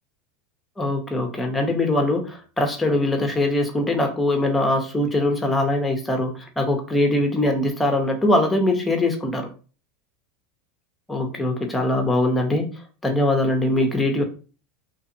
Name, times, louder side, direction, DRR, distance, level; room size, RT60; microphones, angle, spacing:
voice 1, 0.8-9.5 11.1-12.7 13.0-14.2, left 1 dB, 10° left, 4 dB, 0.8 m, -22 dB
2.5 x 2.4 x 2.8 m, 0.36 s
hypercardioid pair, 95°, 0 cm